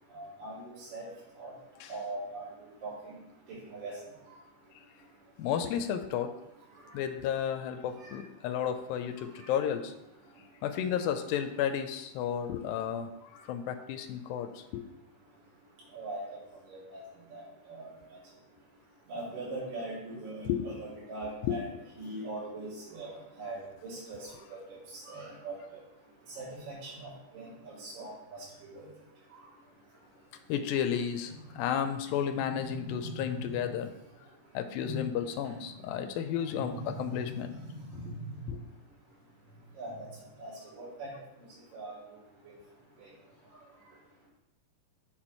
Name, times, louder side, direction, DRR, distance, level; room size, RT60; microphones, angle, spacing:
voice 1, 0.1-1.1 1.4-1.5 1.9-2.4 2.8-3.2 3.7-3.9 8.0-8.2 9.4-9.5 15.9-16.2 16.7-17.0 17.3-17.9 19.1-21.6 22.0-23.6 23.8-24.2 24.9-25.5 26.4-27.1 27.3-28.1 28.6-28.8 32.3-33.4 34.8-35.0 36.5-37.1 38.0-38.2 39.8-40.1 40.4-41.1 41.7-42.0 43.0-43.1, right 2 dB, 65° right, -9 dB, 4.5 m, -41 dB
voice 2, 5.4-6.3 6.9-9.9 10.6-14.9 20.5-20.7 21.4-21.6 30.5-33.9 34.5-37.5 38.5-38.6, left 9 dB, 85° left, 9 dB, 2.3 m, -32 dB
7.9 x 4.4 x 4.4 m, 0.88 s
omnidirectional pair, 4.1 m